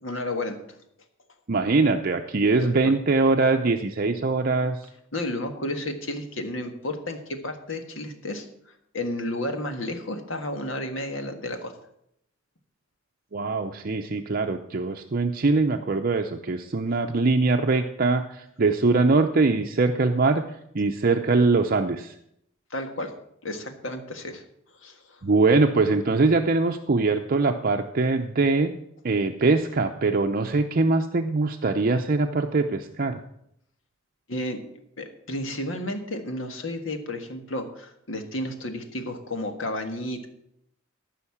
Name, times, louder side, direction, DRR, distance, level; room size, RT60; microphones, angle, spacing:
voice 1, 0.0-0.6 2.6-2.9 5.1-11.7 22.7-23.1 23.4-24.4 24.8-25.2 34.3-34.6 35.0-40.3, left 1 dB, 75° left, 6 dB, 1.6 m, -32 dB
voice 2, 1.5-4.8 13.3-20.5 20.7-22.1 25.2-28.8 29.0-33.2, right 3 dB, 45° right, 5 dB, 0.6 m, -22 dB
14.5 x 5.8 x 7.1 m, 0.74 s
head